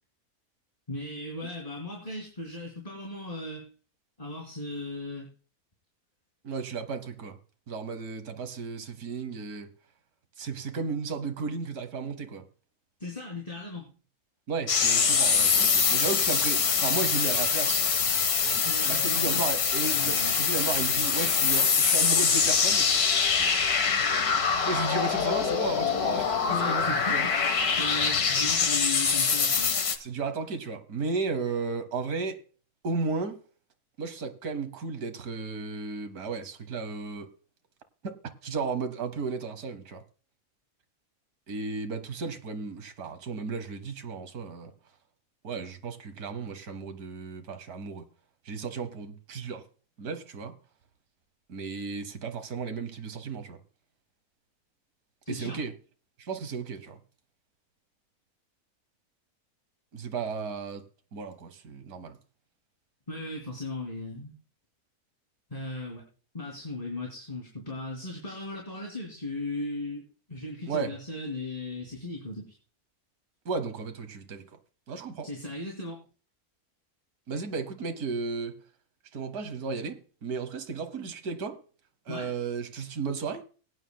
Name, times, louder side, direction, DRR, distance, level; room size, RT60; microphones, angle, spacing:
voice 1, 0.9-3.7 4.2-5.3 13.0-13.9 18.6-19.6 19.9-20.4 26.5-29.8 55.2-55.6 63.1-64.3 65.5-66.0 66.3-70.0 70.3-72.6 75.2-76.0 82.1-82.3, left 2 dB, 25° left, 2.8 m, -37 dB
voice 2, 6.4-7.4 7.7-9.7 10.4-12.4 14.5-17.9 18.4-22.9 24.6-27.3 30.0-32.4 32.8-33.4 34.0-37.3 38.0-38.1 38.4-40.0 41.5-44.7 45.4-48.0 48.4-49.6 50.0-50.5 51.5-53.6 55.3-55.7 56.2-57.0 59.9-60.8 61.1-62.2 70.7-70.9 73.4-74.4 74.9-75.3 77.3-78.6 79.1-81.6 82.1-83.5, right 4 dB, 80° right, 1.7 m, -34 dB
sound 1, 14.7-30.0, left 6 dB, 85° left, 1.8 m, -24 dB
22.0 x 9.5 x 2.2 m
omnidirectional pair, 1.6 m